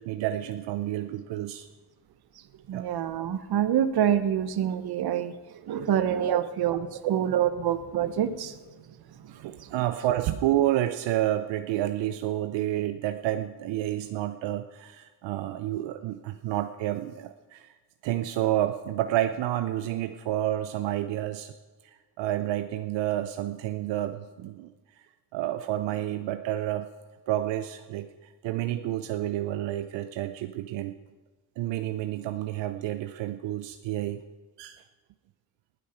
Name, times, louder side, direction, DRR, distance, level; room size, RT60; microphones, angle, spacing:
voice 1, 0.0-1.7 2.7-2.8 6.2-6.4 7.0-7.1 9.4-17.7 18.0-21.5 22.2-24.7 25.3-26.9 27.3-28.1 28.4-30.9 31.6-34.2 34.6-34.8, right 13 dB, 80° right, 0.8 m, -29 dB
voice 2, 2.7-5.3 5.6-8.6 9.2-9.7, right 9 dB, 60° right, 1.2 m, -26 dB
19.5 x 8.3 x 5.9 m
cardioid pair, 100°, 43 cm